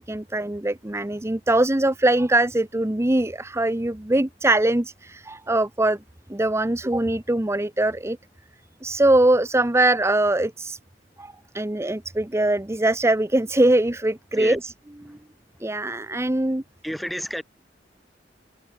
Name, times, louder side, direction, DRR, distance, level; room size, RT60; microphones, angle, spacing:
voice 1, 0.0-6.0 6.3-8.2 8.8-10.8 11.2-14.7 15.1-15.2 15.6-16.6, right 1 dB, 15° right, 0.8 m, -22 dB
voice 2, 16.8-17.4, equal, ahead, 3.5 m, -30 dB
head